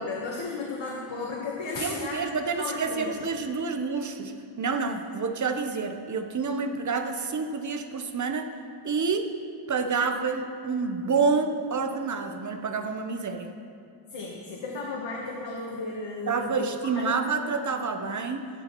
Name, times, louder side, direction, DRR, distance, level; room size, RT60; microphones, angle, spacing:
voice 1, 0.0-3.2 14.1-16.7 17.0-17.2, left 3 dB, 70° left, -2 dB, 1.3 m, -34 dB
voice 2, 1.8-8.5 8.8-9.3 9.7-13.5 16.3-18.5, right 4 dB, 40° right, 6 dB, 0.8 m, -28 dB
16.0 x 11.0 x 3.0 m, 2.5 s
wide cardioid pair, 165°, 47 cm